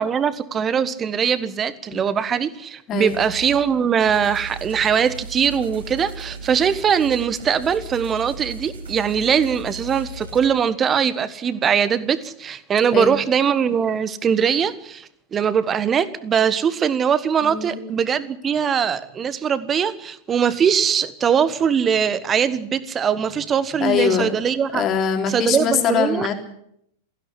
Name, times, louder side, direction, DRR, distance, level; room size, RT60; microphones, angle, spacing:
voice 1, 0.0-24.8 25.3-26.3, right 7 dB, 25° right, 15 dB, 1.4 m, -21 dB
sound 1, 3.1-3.6 4.0-10.5, right 2 dB, 70° right, 4.6 m, -37 dB
voice 2, 17.4-17.8 23.8-24.4 24.7-26.3, left 7 dB, 30° left, 5 dB, 3.4 m, -22 dB
17.0 x 16.0 x 10.0 m, 0.71 s
figure-of-eight pair, 90°, 0 cm